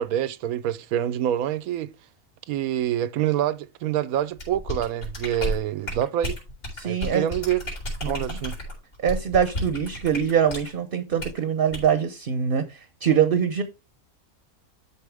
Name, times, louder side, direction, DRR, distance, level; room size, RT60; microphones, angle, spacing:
voice 1, 0.0-1.9 2.5-6.4 6.8-7.6 8.0-8.6, right 11 dB, 80° right, 1.1 m, -26 dB
sound 1, 4.4-10.7 11.2-11.4 11.7-11.9, left 1 dB, 75° left, 4.7 m, -32 dB
voice 2, 6.7-7.3 8.0-8.4 9.0-13.6, right 8 dB, 45° right, 0.9 m, -23 dB
12.5 x 4.3 x 3.4 m
omnidirectional pair, 1.5 m